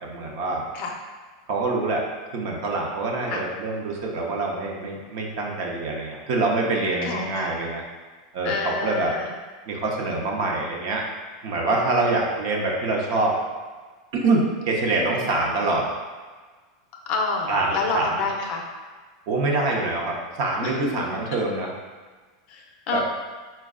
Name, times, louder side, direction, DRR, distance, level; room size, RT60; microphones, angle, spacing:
voice 1, 0.0-0.7 1.5-2.0 2.3-7.8 8.3-9.1 9.7-11.0 11.4-13.4 14.2-15.9 17.5-18.1 19.3-21.7 22.9-23.0, right 2 dB, 50° right, -1 dB, 0.7 m, -25 dB
voice 2, 7.0-7.5 8.4-9.3 11.7-11.8 15.2-15.3 17.1-18.6 20.6-20.7 22.5-23.0, left 4 dB, 40° left, 0 dB, 0.5 m, -28 dB
4.2 x 2.2 x 3.6 m, 1.4 s
supercardioid pair, 165°, 3 cm